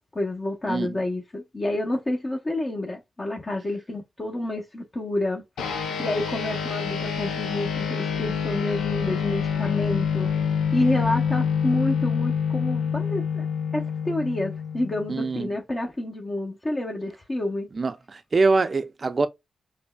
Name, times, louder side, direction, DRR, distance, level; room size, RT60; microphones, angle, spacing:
voice 1, 0.1-13.5 13.7-17.7, left 1 dB, 35° left, 0.8 m, -29 dB
voice 2, 0.7-1.0 15.1-15.5 17.8-19.3, right 3 dB, 45° right, 0.5 m, -24 dB
sound 1, 5.6-15.3, left 7 dB, 90° left, 0.6 m, -27 dB
5.2 x 2.1 x 2.3 m
supercardioid pair, 50°, 0 cm